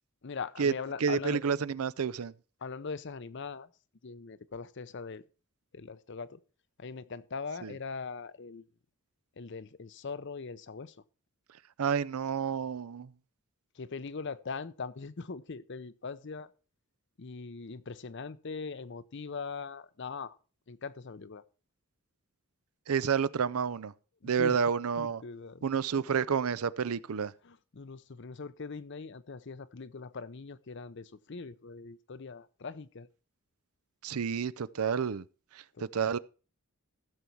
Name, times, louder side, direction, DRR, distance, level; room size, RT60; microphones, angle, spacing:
voice 1, 0.2-1.4 2.6-3.7 4.0-5.2 5.7-6.4 6.8-8.7 9.4-11.0 13.7-16.5 17.2-20.4 20.7-21.4 24.2-24.7 25.0-25.7 27.4-33.1 35.7-36.1, left 4 dB, 55° left, 0.6 m, -41 dB
voice 2, 1.0-2.3 7.6-7.7 11.8-13.1 22.9-23.9 24.2-25.2 25.6-27.3 34.0-35.2 35.8-36.2, right 6 dB, 85° right, 0.5 m, -29 dB
15.0 x 7.0 x 4.6 m
head